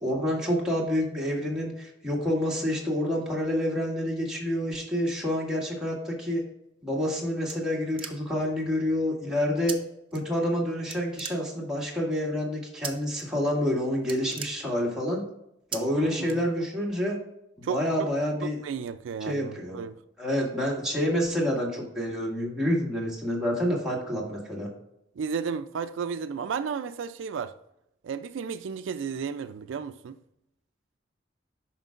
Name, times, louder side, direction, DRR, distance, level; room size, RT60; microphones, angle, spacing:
voice 1, 0.0-6.4 6.8-9.8 10.1-15.2 15.7-17.2 17.6-18.6 19.2-19.8 20.2-24.7, equal, 5° right, 1.9 m, -28 dB
sound 1, 6.8-8.5 9.7-9.8 10.1-10.6 10.9-11.9 12.8-13.2 13.6-13.7 14.0-15.1 15.7-15.8 16.2-16.9, right 7 dB, 30° right, 0.6 m, -39 dB
voice 2, 16.0-16.4 17.6-17.8 18.4-20.0 25.2-27.5 28.0-30.2, right 6 dB, 75° right, 0.4 m, -33 dB
9.1 x 5.9 x 2.4 m
head